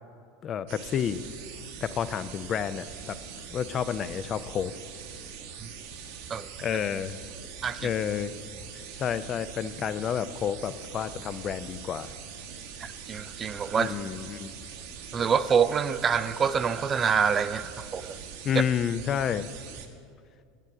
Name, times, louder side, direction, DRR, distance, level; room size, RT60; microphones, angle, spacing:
voice 1, 0.4-1.2 1.8-3.2 3.5-4.7 6.6-7.2 7.8-8.3 9.0-12.1 13.8-14.5 18.4-19.5, left 8 dB, 40° left, 13 dB, 0.4 m, -30 dB
sound 1, 0.7-19.9, right 6 dB, 70° right, 1.0 m, -43 dB
voice 2, 12.8-13.9 15.1-18.2, right 6 dB, 30° right, 14 dB, 0.4 m, -26 dB
9.1 x 8.3 x 6.0 m, 2.4 s
hypercardioid pair, 85°, 0 cm